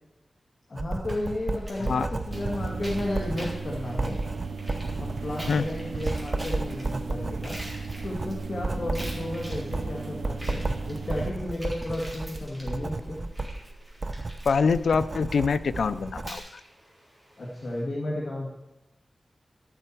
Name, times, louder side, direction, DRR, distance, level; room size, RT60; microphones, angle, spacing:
voice 1, 0.7-4.2 5.0-7.6 8.0-10.6 10.9-13.2 17.4-18.5, left 1 dB, 50° left, -3 dB, 1.7 m, -33 dB
Writing, 0.8-16.4, right 2 dB, 40° right, 0.6 m, -33 dB
sound 1, 1.1-17.8, equal, 5° right, 3.6 m, -47 dB
sound 2, 2.3-11.3, right 4 dB, 80° right, 0.6 m, -37 dB
voice 2, 14.5-16.6, left 5 dB, 85° left, 14 dB, 0.4 m, -25 dB
12.0 x 7.9 x 4.4 m, 0.98 s
wide cardioid pair, 100°, 0 cm